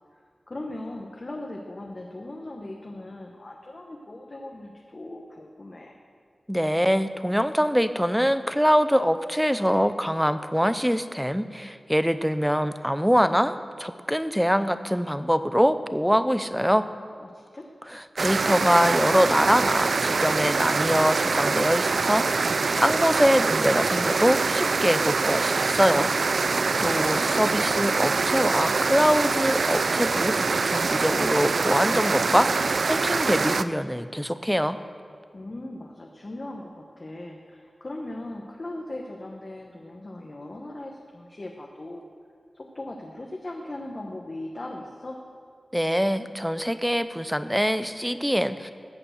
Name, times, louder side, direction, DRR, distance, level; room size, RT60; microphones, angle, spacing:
voice 1, 0.5-6.0 17.2-17.7 26.4-28.0 35.3-42.1 42.5-45.2, left 1 dB, 35° left, 0 dB, 1.1 m, -39 dB
voice 2, 6.5-16.9 17.9-26.1 26.4-26.5 26.8-34.8 45.7-48.7, equal, ahead, 12 dB, 0.5 m, -24 dB
sound 1, 18.2-33.6, right 4 dB, 70° right, 0.3 m, -24 dB
14.5 x 8.7 x 6.5 m, 2.2 s
wide cardioid pair, 105°, 0 cm